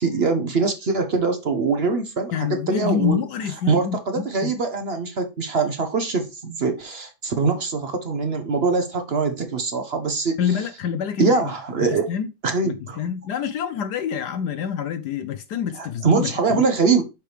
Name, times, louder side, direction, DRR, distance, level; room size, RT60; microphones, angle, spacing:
voice 1, 0.0-3.2 3.7-10.4 11.2-12.1 12.4-13.0 15.8-17.1, right 4 dB, 55° right, 0.7 m, -23 dB
voice 2, 2.3-4.5 10.4-11.4 11.8-12.3 12.6-16.6, left 8 dB, 70° left, 1.0 m, -27 dB
6.7 x 4.7 x 3.3 m
omnidirectional pair, 2.2 m